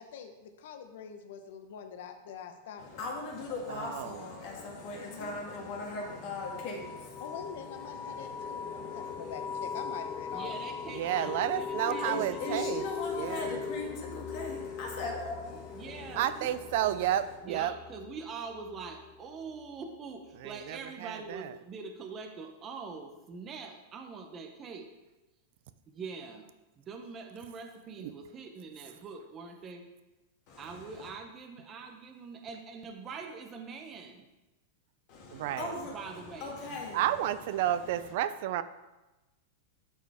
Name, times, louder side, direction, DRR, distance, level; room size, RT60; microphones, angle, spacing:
voice 1, 0.0-3.0 7.2-10.8, left 7 dB, 70° left, 7 dB, 0.9 m, -44 dB
voice 2, 2.8-17.3 30.5-31.1 35.1-38.1, left 2 dB, 45° left, -1 dB, 1.8 m, -41 dB
voice 3, 3.7-4.1 11.0-12.8 13.1-13.6 16.2-17.7 20.4-21.5 35.3-35.7 36.9-38.6, right 12 dB, 55° right, 14 dB, 0.4 m, -31 dB
sound 1, 5.2-19.6, left 6 dB, 25° left, 0.3 m, -40 dB
voice 4, 10.3-12.6 15.7-16.5 17.4-24.9 25.9-29.9 30.6-34.3 35.9-36.5, right 4 dB, 25° right, 4 dB, 0.7 m, -44 dB
12.0 x 4.5 x 3.5 m, 1.0 s
supercardioid pair, 155°, 0 cm